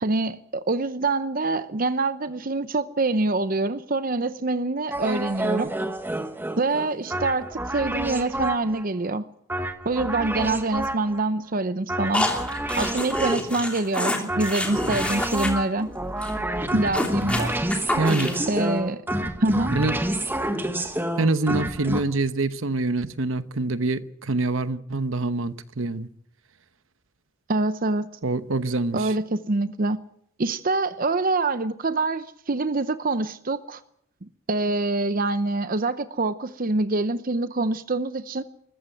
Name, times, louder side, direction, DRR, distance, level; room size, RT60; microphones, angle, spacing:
voice 1, 0.0-5.7 6.6-9.3 9.8-12.3 12.8-15.9 16.7-17.6 18.5-19.0 19.4-19.8 27.5-28.1 28.9-30.0 30.4-33.8 34.5-38.4, right 2 dB, 40° right, 0.7 m, -25 dB
sound 1, 4.9-8.8 9.5-11.2 11.9-13.6 14.3-22.0, right 1 dB, 10° right, 1.3 m, -29 dB
sound 2, 12.1-15.5 15.8-15.9 16.2-16.3 16.6-18.5, left 1 dB, 5° left, 3.0 m, -28 dB
voice 2, 18.0-18.4 19.7-20.0 21.2-26.1 28.2-29.1, right 2 dB, 70° right, 1.0 m, -25 dB
21.0 x 14.5 x 9.1 m
head